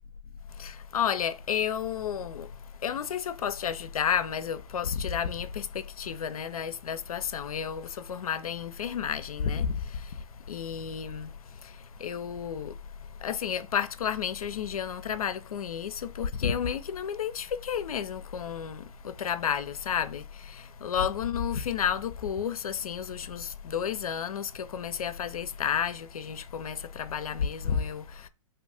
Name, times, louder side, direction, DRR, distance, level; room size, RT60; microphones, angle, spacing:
voice 1, 0.6-2.5 2.8-9.8 10.5-11.3 12.0-12.7 13.2-28.0, left 8 dB, 85° left, 0.4 m, -31 dB
2.8 x 2.5 x 3.4 m
hypercardioid pair, 110°, 18 cm